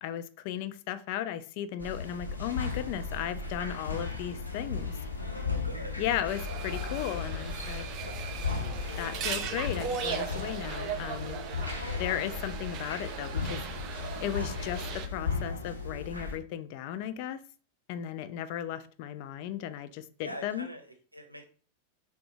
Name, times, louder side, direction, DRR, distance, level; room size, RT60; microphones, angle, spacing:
voice 1, 0.0-5.0 6.0-7.9 9.0-11.4 12.0-13.6 14.2-17.4 17.9-20.7, left 11 dB, 45° left, 0.3 m, -35 dB
sound 1, 1.8-16.4, left 4 dB, 85° left, 0.7 m, -36 dB
voice 2, 5.4-6.0 8.1-8.3 20.2-21.5, equal, 85° right, 0.6 m, -44 dB
sound 2, 6.3-15.1, right 7 dB, 40° right, 0.4 m, -38 dB
4.2 x 2.1 x 2.7 m
figure-of-eight pair, 90°, 0 cm